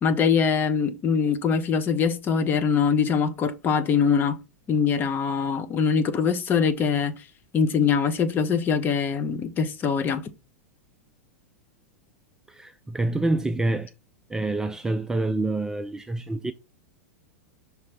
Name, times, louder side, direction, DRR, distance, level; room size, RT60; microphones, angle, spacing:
voice 1, 0.0-4.4 4.7-7.1 7.5-10.3, left 6 dB, 25° left, 1.0 m, -23 dB
voice 2, 12.5-13.9 14.3-16.5, right 2 dB, 10° right, 0.4 m, -27 dB
5.8 x 3.2 x 5.7 m
figure-of-eight pair, 95°, 8 cm